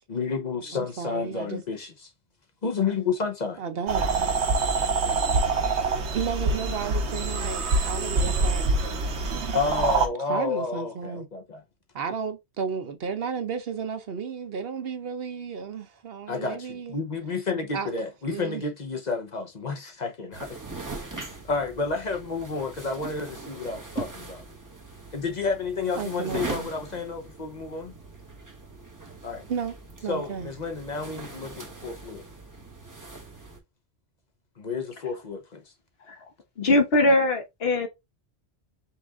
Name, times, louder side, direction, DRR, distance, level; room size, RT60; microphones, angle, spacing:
voice 1, 0.1-2.1 2.6-3.6 9.2-11.6 16.3-20.6 21.0-24.4 25.1-27.9 29.2-29.4 30.1-32.3 34.6-35.6, left 4 dB, 45° left, 0.8 m, -31 dB
voice 2, 0.7-1.6 3.6-4.0 6.1-8.7 10.2-11.3 11.9-16.9 17.7-17.9 18.3-18.6 26.0-26.7 29.5-29.7 30.0-30.5, right 6 dB, 65° right, 1.0 m, -33 dB
sound 1, 3.9-10.1, right 3 dB, 80° right, 1.2 m, -25 dB
sound 2, 20.3-33.6, right 3 dB, 20° right, 1.0 m, -40 dB
voice 3, 36.6-37.9, left 2 dB, 65° left, 1.3 m, -21 dB
5.5 x 2.5 x 3.5 m
omnidirectional pair, 1.1 m